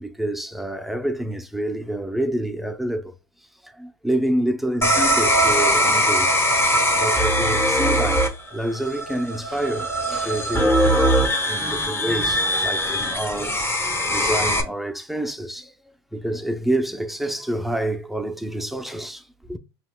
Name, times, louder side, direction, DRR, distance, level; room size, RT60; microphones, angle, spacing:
voice 1, 0.0-3.1 3.6-6.3 6.9-13.6 14.1-15.7 16.1-19.6, right 1 dB, ahead, 0.5 m, -28 dB
sound 1, 4.8-14.6, equal, 15° left, 1.1 m, -21 dB
5.6 x 2.9 x 2.3 m
hypercardioid pair, 95°, 13 cm